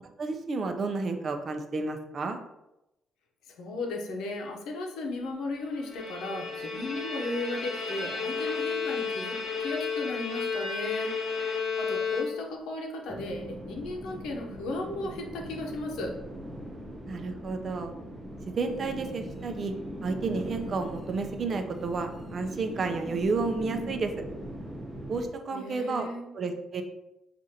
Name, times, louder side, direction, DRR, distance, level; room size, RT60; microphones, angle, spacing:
voice 1, 0.2-2.4 17.1-17.9 18.6-19.7 20.0-24.1 25.1-26.1 26.3-26.8, right 4 dB, 50° right, 6 dB, 0.5 m, -31 dB
voice 2, 3.5-11.2 11.8-16.2 25.5-26.3, left 2 dB, 85° left, 2 dB, 0.7 m, -35 dB
Bowed string instrument, 5.7-12.7, left 5 dB, 65° left, 1.1 m, -32 dB
sound 1, 13.1-25.3, equal, 15° right, 0.8 m, -40 dB
6.3 x 2.5 x 2.8 m, 0.91 s
cardioid pair, 90°, 0 cm